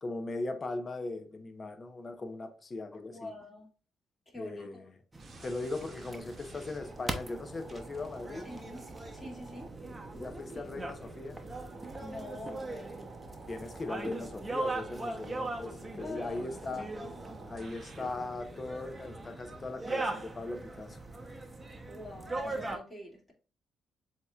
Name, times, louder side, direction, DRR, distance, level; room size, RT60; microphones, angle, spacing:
voice 1, 0.0-3.3 4.3-4.9 5.4-8.5 10.1-11.4 13.5-16.9 17.5-21.0, left 2 dB, 35° left, 0.9 m, -39 dB
voice 2, 3.1-3.7 4.3-4.9 8.4-8.8 9.1-9.7 12.0-13.2 16.0-16.8 17.1-17.2 21.9-23.3, left 1 dB, 15° left, 2.5 m, -45 dB
sound 1, 5.1-22.8, right 2 dB, 20° right, 0.9 m, -40 dB
sound 2, 5.2-18.3, right 3 dB, 45° right, 1.0 m, -51 dB
7.4 x 2.9 x 2.4 m
cardioid pair, 90°, 0 cm